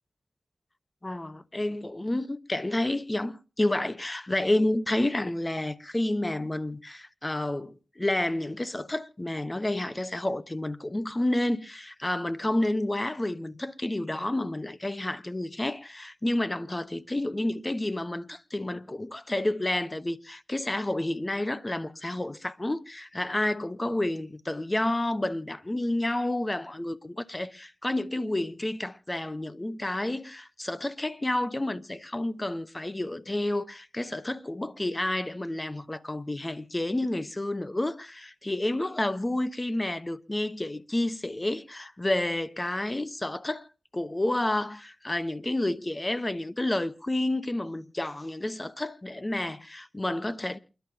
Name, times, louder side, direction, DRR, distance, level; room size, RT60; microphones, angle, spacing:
voice 1, 1.0-43.7 43.9-50.6, left 1 dB, 25° left, 1.1 m, -30 dB
28.5 x 11.5 x 2.9 m
cardioid pair, 50°, 0 cm